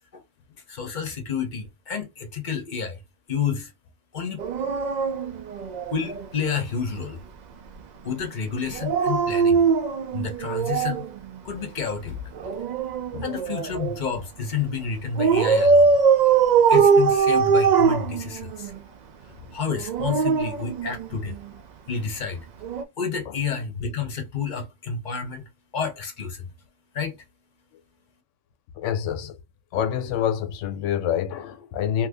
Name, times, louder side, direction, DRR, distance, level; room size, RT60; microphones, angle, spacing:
voice 1, 0.7-3.0 3.3-3.7 4.1-4.4 5.9-7.2 8.0-9.6 10.1-11.1 11.4-12.6 13.2-16.0 16.7-18.7 19.5-21.4 21.9-22.5 23.0-26.5 26.9-27.2, left 6 dB, 45° left, 0.8 m, -30 dB
Dog, 4.4-6.3 8.7-11.1 12.4-14.0 15.2-18.7 19.7-21.4 22.6-22.8, right 5 dB, 60° right, 0.4 m, -21 dB
voice 2, 28.8-29.4 29.7-32.1, left 9 dB, 90° left, 0.9 m, -27 dB
2.7 x 2.6 x 3.4 m
omnidirectional pair, 1.2 m